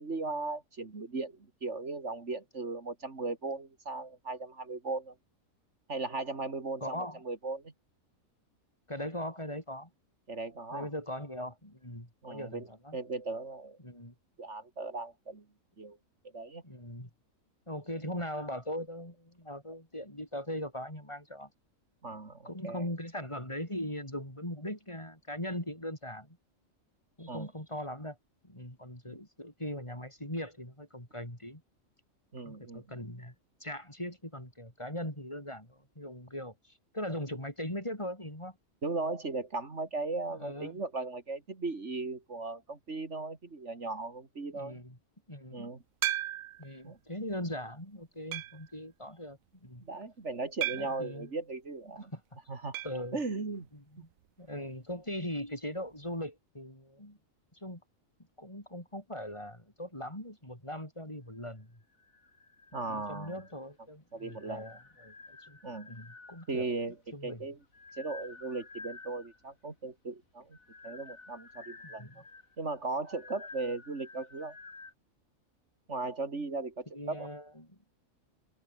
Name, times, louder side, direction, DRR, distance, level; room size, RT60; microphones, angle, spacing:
voice 1, 0.0-5.1 5.9-7.7 10.3-10.9 12.2-12.7 12.9-13.8 14.4-15.4 15.8-16.0 16.3-16.6 22.0-22.8 27.3-27.5 29.1-29.2 32.3-32.8 38.8-44.8 45.5-45.8 46.8-47.0 49.8-52.1 52.5-52.8 53.1-53.7 54.0-54.1 62.7-63.4 64.1-64.6 65.6-65.9 66.5-67.0 67.2-67.6 68.0-70.6 70.8-72.1 72.6-74.6 75.9-77.3, right 3 dB, 60° right, 2.9 m, -37 dB
voice 2, 6.8-7.2 8.9-9.9 10.7-13.0 13.8-14.1 16.6-17.1 17.7-21.5 22.4-26.4 27.2-28.2 28.4-31.6 32.4-33.3 33.6-38.6 40.4-40.8 44.5-45.0 45.3-45.7 46.6-49.8 50.8-51.3 52.1-52.2 52.8-53.2 53.7-54.1 54.4-57.2 57.5-57.8 58.4-61.8 62.7-65.6 65.9-66.7 67.1-67.4 71.8-72.2 76.9-77.8, left 1 dB, 20° left, 5.7 m, -40 dB
sound 1, 46.0-46.7 47.3-47.4 48.3-48.7 50.6-51.1 52.7-53.0 53.3-53.4 53.7-53.8 55.8-55.9, right 13 dB, 85° right, 1.0 m, -35 dB
sound 2, 61.9-63.7 64.2-66.6 67.4-69.5 70.4-74.9, left 3 dB, 85° left, 3.8 m, -51 dB
omnidirectional pair, 1.4 m